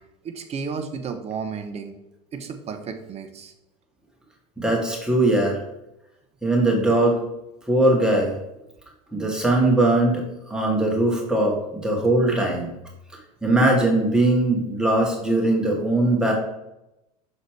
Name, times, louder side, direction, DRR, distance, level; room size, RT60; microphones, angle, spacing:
voice 1, 0.2-1.9 2.3-3.5, right 5 dB, 35° right, 7 dB, 0.8 m, -32 dB
voice 2, 4.6-5.6 6.4-7.2 7.7-8.4 9.1-10.2 10.5-11.6 11.8-12.7 13.4-16.3, right 2 dB, 5° right, -2 dB, 2.1 m, -20 dB
6.6 x 3.9 x 4.6 m, 0.90 s
hypercardioid pair, 85°, 19 cm